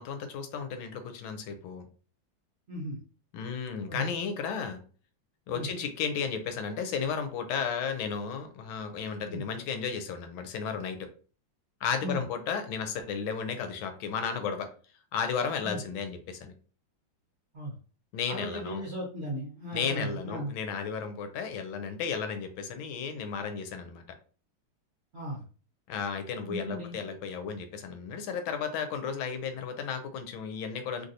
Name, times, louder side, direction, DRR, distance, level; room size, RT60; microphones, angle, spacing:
voice 1, 0.0-1.9 3.3-4.8 5.5-11.1 11.8-14.7 15.1-16.5 18.1-18.8 19.7-24.0 25.9-31.1, left 6 dB, 80° left, 8 dB, 1.3 m, -34 dB
voice 2, 2.7-3.0 3.9-4.1 5.5-5.7 9.3-9.4 12.0-12.2 15.6-15.8 17.5-17.7 18.3-20.5 25.1-25.4 26.5-27.0, equal, 45° right, -6 dB, 0.9 m, -36 dB
3.2 x 2.6 x 2.6 m, 0.40 s
omnidirectional pair, 2.2 m